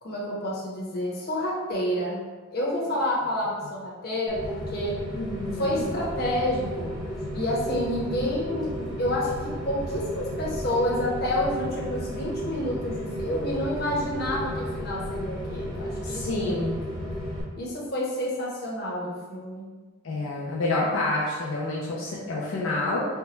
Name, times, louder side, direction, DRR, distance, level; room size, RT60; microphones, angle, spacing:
voice 1, 0.0-2.2 2.5-4.9 5.6-6.9 7.3-16.6 17.6-19.6, left 1 dB, 50° left, -5 dB, 0.9 m, -29 dB
Rain, 4.3-17.4, equal, 15° right, 0.9 m, -33 dB
voice 2, 5.1-5.9 16.0-16.8 20.0-23.1, left 2 dB, 80° left, -5 dB, 0.5 m, -28 dB
4.5 x 2.2 x 3.0 m, 1.4 s
head